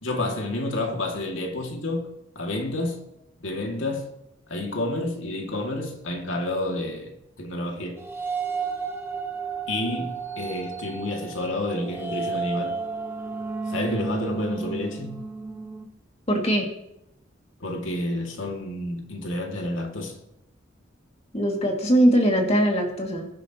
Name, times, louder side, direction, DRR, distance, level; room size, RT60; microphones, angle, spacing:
voice 1, 0.0-3.0 3.4-4.1 4.5-7.1 7.4-8.0 9.7-12.8 13.7-15.2 17.6-20.2, left 1 dB, 75° left, 2.4 m, -29 dB
sound 1, 8.0-15.9, right 4 dB, 10° right, 1.2 m, -32 dB
voice 2, 16.3-16.7 21.3-23.3, equal, 30° left, 2.4 m, -21 dB
22.0 x 10.5 x 3.0 m
head